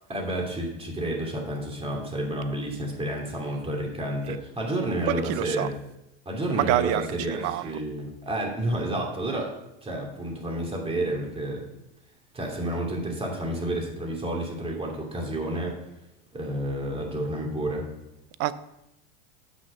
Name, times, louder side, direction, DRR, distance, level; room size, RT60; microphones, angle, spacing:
voice 1, 0.1-5.8 6.3-9.5 9.8-11.7 12.3-15.8 16.3-17.8, right 1 dB, 20° right, 0 dB, 2.7 m, -30 dB
voice 2, 5.1-5.7 6.6-7.6 18.4-18.5, right 14 dB, 55° right, 16 dB, 0.6 m, -26 dB
8.0 x 6.3 x 5.4 m, 0.87 s
supercardioid pair, 100°, 29 cm